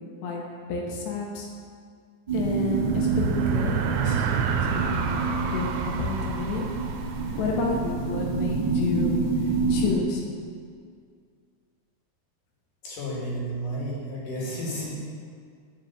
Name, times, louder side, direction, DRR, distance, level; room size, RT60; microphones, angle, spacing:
voice 1, 0.7-1.5 2.3-3.7 4.0-4.3 4.6-6.7 7.3-10.2, left 3 dB, 80° left, -1 dB, 3.2 m, -30 dB
sound 1, 2.3-9.9, right 3 dB, 10° right, 2.1 m, -28 dB
sound 2, 2.4-8.1, right 7 dB, 90° right, 3.1 m, -30 dB
voice 2, 12.8-14.9, right 1 dB, 55° left, -5 dB, 3.3 m, -32 dB
10.0 x 6.7 x 7.2 m, 2.1 s
omnidirectional pair, 5.2 m